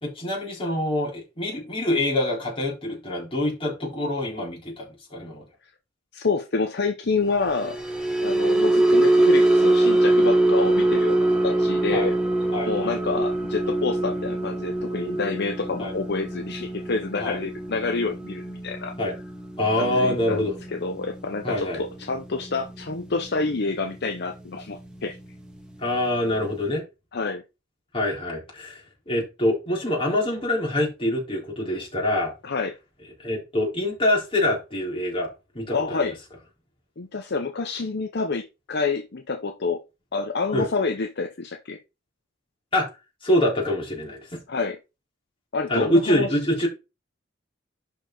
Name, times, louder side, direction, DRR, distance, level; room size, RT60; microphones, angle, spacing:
voice 1, 0.0-5.4 11.9-12.1 12.5-12.9 15.8-15.9 17.2-17.4 19.0-19.1 19.6-20.6 21.4-21.8 25.8-26.8 27.9-32.3 33.2-35.3 35.5-36.1 40.5-40.7 42.7-42.9 43.2-44.4 45.7-46.7, left 1 dB, 30° left, 4.0 m, -25 dB
voice 2, 6.1-7.8 8.2-12.1 12.6-18.9 19.8-25.2 27.1-27.4 32.4-32.7 35.7-36.2 37.0-39.8 40.1-41.8 44.5-44.8 45.5-46.3, left 4 dB, 55° left, 0.8 m, -28 dB
sound 1, 7.4-23.8 24.2-24.5 24.8-25.0, right 2 dB, 5° right, 1.7 m, -24 dB
11.0 x 4.6 x 3.9 m
head